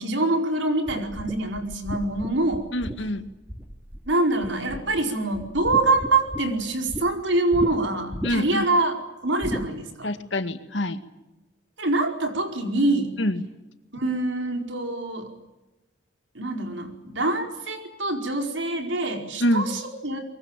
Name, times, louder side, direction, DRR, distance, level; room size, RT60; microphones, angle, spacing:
voice 1, 0.0-2.7 4.1-9.0 9.2-10.1 11.8-13.2 13.9-15.3 16.3-20.2, right 2 dB, 80° right, 4 dB, 4.9 m, -25 dB
sound 1, 0.9-4.1 4.4-5.0 5.3-7.0 7.5-7.7 8.1-8.6 9.4-9.7, equal, 10° right, 2.6 m, -34 dB
voice 2, 2.7-3.2 8.2-8.7 10.0-11.0 13.2-13.4 19.4-19.7, left 1 dB, 75° left, 9 dB, 2.1 m, -25 dB
23.5 x 23.0 x 9.1 m, 1.0 s
head